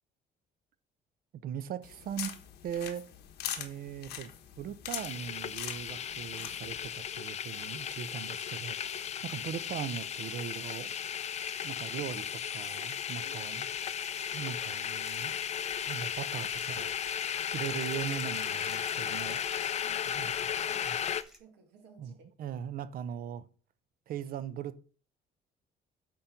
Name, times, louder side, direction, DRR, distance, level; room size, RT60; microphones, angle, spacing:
voice 1, 1.4-2.3 2.6-3.0 3.6-10.9 11.6-13.6 14.3-15.4 15.9-17.0 17.5-19.7 20.1-20.3 20.8-21.0 22.0-22.1 22.4-23.4 24.1-24.8, right 9 dB, 60° right, 0.7 m, -39 dB
sound 1, 1.8-6.9, left 10 dB, 80° left, 1.2 m, -42 dB
sound 2, 4.9-21.2, left 9 dB, 40° left, 0.5 m, -35 dB
sound 3, 6.2-7.6 10.3-21.4, equal, ahead, 1.4 m, -54 dB
voice 2, 13.2-13.6 19.8-22.3 23.1-23.2, right 5 dB, 90° right, 2.4 m, -59 dB
8.6 x 3.9 x 5.8 m
cardioid pair, 110°, 17 cm